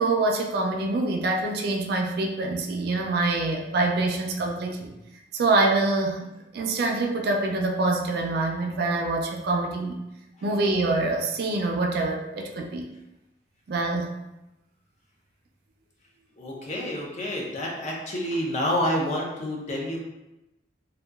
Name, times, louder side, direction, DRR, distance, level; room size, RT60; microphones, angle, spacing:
voice 1, 0.0-4.9 5.3-6.2 6.5-10.0 10.4-12.9 13.7-14.1, right 2 dB, 55° right, 1 dB, 0.3 m, -25 dB
voice 2, 16.4-20.0, equal, 35° left, -2 dB, 0.5 m, -28 dB
2.7 x 2.2 x 2.3 m, 0.95 s
head